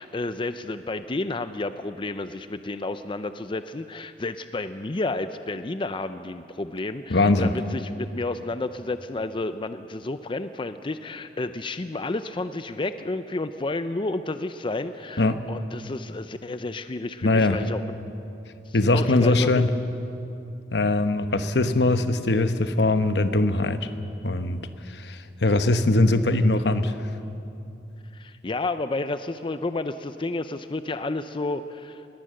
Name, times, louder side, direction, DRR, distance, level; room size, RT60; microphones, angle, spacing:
voice 1, 0.0-18.0 18.7-19.7 28.1-32.2, left 2 dB, 30° left, 11 dB, 0.5 m, -31 dB
voice 2, 7.1-7.5 15.2-15.4 17.2-17.6 18.7-19.7 20.7-23.9 24.2-27.0, left 2 dB, 70° left, 10 dB, 1.0 m, -21 dB
21.0 x 18.0 x 7.7 m, 2.7 s
head